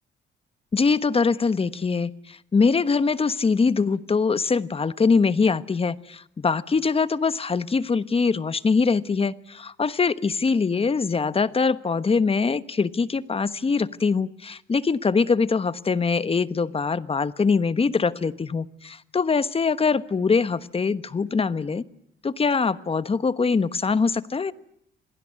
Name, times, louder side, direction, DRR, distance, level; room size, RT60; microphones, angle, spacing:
voice 1, 0.7-21.8 22.2-24.5, left 4 dB, 30° left, 15 dB, 1.2 m, -23 dB
27.5 x 19.0 x 9.7 m, 0.74 s
cardioid pair, 90°, 20 cm